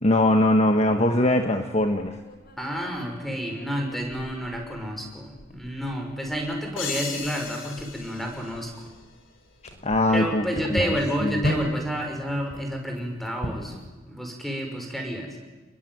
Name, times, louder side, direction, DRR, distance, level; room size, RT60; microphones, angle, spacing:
voice 1, 0.0-2.1 9.8-10.9 11.2-11.5, left 1 dB, 35° left, 5 dB, 1.5 m, -21 dB
sound 1, 1.7-13.9, equal, 50° left, 5.0 m, -38 dB
voice 2, 2.6-8.9 10.1-13.7 14.1-15.4, equal, ahead, 3 dB, 5.9 m, -30 dB
sound 2, 6.8-9.4, left 6 dB, 75° left, 3.8 m, -37 dB
29.0 x 21.5 x 9.5 m, 1.2 s
head